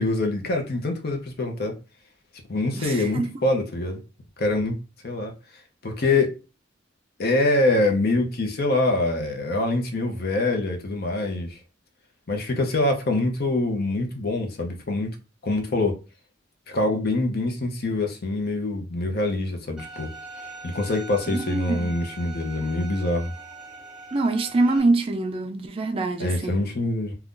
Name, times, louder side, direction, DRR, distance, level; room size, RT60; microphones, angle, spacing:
voice 1, 0.0-1.8 2.5-4.0 4.4-4.7 5.0-5.3 5.8-6.3 7.2-11.6 12.3-15.1 15.4-16.0 16.7-20.1 20.6-23.3 26.2-27.1, left 2 dB, 55° left, 0.7 m, -24 dB
voice 2, 2.8-3.3 21.3-22.0 24.1-26.6, right 2 dB, 30° right, 0.3 m, -24 dB
Bowed string instrument, 19.8-24.8, right 3 dB, 5° right, 0.9 m, -41 dB
2.6 x 2.3 x 3.6 m
head